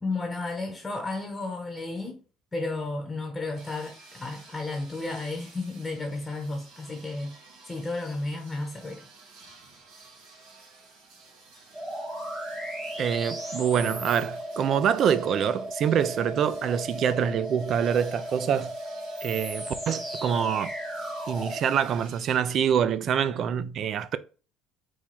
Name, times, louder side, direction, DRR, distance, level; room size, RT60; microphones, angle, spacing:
voice 1, 0.0-2.2 2.5-7.4 7.7-9.1, left 2 dB, 15° left, 0.9 m, -33 dB
sound 1, 3.6-22.4, right 3 dB, 70° right, 2.2 m, -52 dB
sound 2, 11.7-21.6, equal, 15° right, 1.4 m, -36 dB
voice 2, 13.0-18.8 19.2-20.7 21.3-24.2, right 8 dB, 50° right, 0.4 m, -25 dB
4.5 x 2.3 x 4.1 m
cardioid pair, 110°, 0 cm